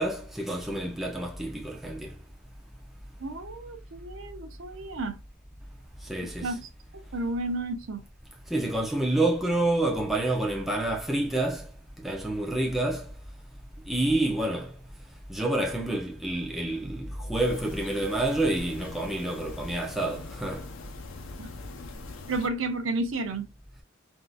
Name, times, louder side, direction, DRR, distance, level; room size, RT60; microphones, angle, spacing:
voice 1, 0.0-2.1 6.1-6.5 8.5-11.6 12.0-13.1 13.9-14.7 15.3-20.6, right 1 dB, ahead, 0.6 m, -28 dB
voice 2, 3.2-5.2 6.2-8.0 21.4-21.5 22.3-23.5, right 2 dB, 85° right, 0.6 m, -32 dB
sound 1, 17.3-22.5, left 3 dB, 85° left, 0.6 m, -42 dB
3.5 x 2.7 x 2.3 m
head